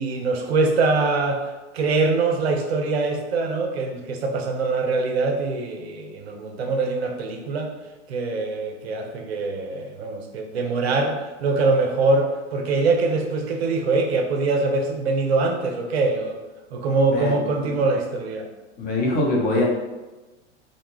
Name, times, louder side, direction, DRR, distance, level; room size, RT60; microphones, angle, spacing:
voice 1, 0.0-1.4 1.7-7.7 8.1-16.4 16.7-18.5, right 3 dB, 60° right, 3 dB, 0.5 m, -23 dB
voice 2, 17.1-17.5 18.8-19.6, left 2 dB, 25° left, -3 dB, 0.7 m, -23 dB
2.2 x 2.1 x 3.1 m, 1.2 s
figure-of-eight pair, 90°, 35 cm